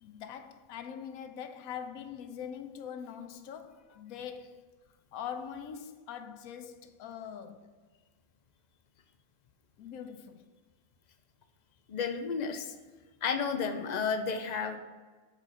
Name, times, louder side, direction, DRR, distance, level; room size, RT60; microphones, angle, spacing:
voice 1, 0.0-4.7 5.1-7.8 9.8-10.5, left 8 dB, 85° left, 1.1 m, -43 dB
voice 2, 11.9-12.7 13.2-14.8, left 5 dB, 60° left, 0.4 m, -32 dB
6.3 x 4.2 x 5.4 m
omnidirectional pair, 1.5 m